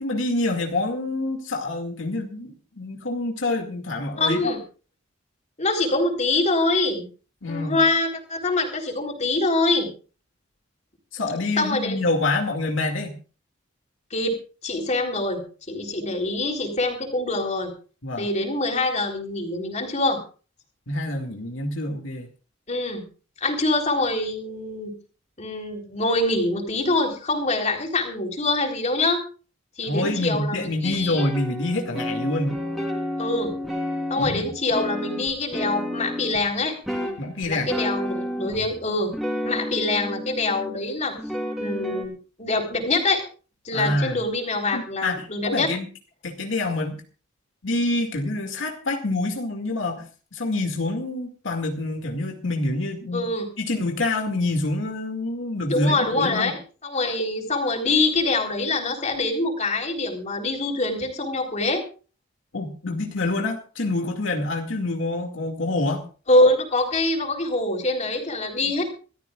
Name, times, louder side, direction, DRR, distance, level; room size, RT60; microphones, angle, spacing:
voice 1, 0.0-4.5 7.4-7.8 11.1-13.2 18.0-18.3 20.9-22.3 29.9-32.6 34.2-34.5 37.2-37.7 43.7-44.2 44.7-45.9 46.2-47.0 47.6-50.0 50.3-53.2 53.6-56.5 62.5-66.0 68.6-68.7, left 2 dB, 85° left, 2 dB, 2.3 m, -26 dB
voice 2, 4.2-4.6 5.6-7.1 7.5-9.9 11.6-12.0 14.1-14.3 14.6-15.4 15.7-17.7 18.2-20.2 22.7-23.0 23.4-24.9 25.4-29.2 29.8-31.2 33.2-33.5 34.1-36.8 37.5-39.1 39.4-41.1 41.6-42.1 42.4-43.2 43.6-45.7 53.1-53.5 55.7-61.8 66.3-68.9, left 2 dB, 35° left, 2 dB, 3.9 m, -24 dB
sound 1, 30.8-36.5 36.9-38.8 39.1-40.8 41.2-42.0, left 1 dB, ahead, 3.6 m, -30 dB
26.0 x 14.0 x 2.4 m, 0.37 s
head